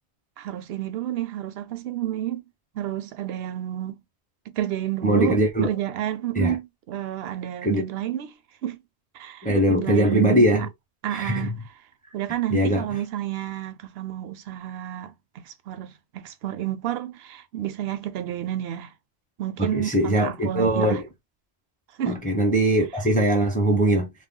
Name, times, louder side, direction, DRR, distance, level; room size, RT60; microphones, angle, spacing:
voice 1, 0.4-2.4 2.7-4.0 4.5-5.4 5.6-8.3 8.6-8.8 9.1-10.7 11.0-11.6 12.1-18.9 19.4-21.0 22.0-22.2, right 12 dB, 70° right, 0.8 m, -30 dB
voice 2, 5.0-5.7 6.4-6.6 7.6-7.8 9.4-10.7 11.1-11.5 12.5-12.9 19.6-21.1 22.1-24.1, right 1 dB, 10° left, 0.6 m, -21 dB
2.4 x 2.1 x 3.6 m
omnidirectional pair, 1.1 m